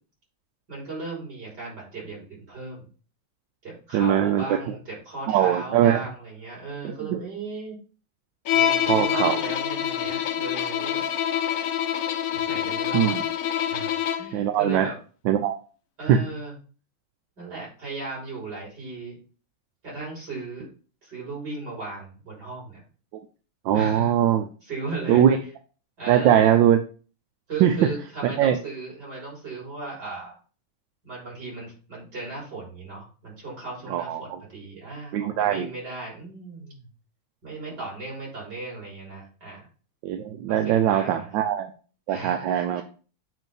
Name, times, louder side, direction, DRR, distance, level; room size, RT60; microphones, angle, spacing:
voice 1, 0.7-2.8 3.6-7.8 8.5-11.1 12.3-13.1 13.7-13.9 14.2-15.0 16.0-16.5 17.4-19.2 19.8-20.7 21.0-22.8 23.7-24.2 24.6-25.3 26.0-26.6 27.5-30.3 31.0-36.9 37.4-39.7 40.5-41.3 42.1-42.8, right 3 dB, 55° right, -4 dB, 4.4 m, -36 dB
voice 2, 3.9-4.6 5.3-6.0 6.8-7.2 8.9-9.4 12.9-13.2 14.3-14.9 15.3-15.5 16.1-16.2 23.6-24.5 25.1-25.4 26.1-26.8 27.6-27.9 28.4-28.6 33.9-34.2 35.1-35.7 40.0-41.7 42.1-42.8, right 10 dB, 75° right, 6 dB, 1.2 m, -21 dB
Bowed string instrument, 8.5-14.4, left 10 dB, 75° left, 0.8 m, -26 dB
8.0 x 2.7 x 5.3 m, 0.39 s
omnidirectional pair, 2.2 m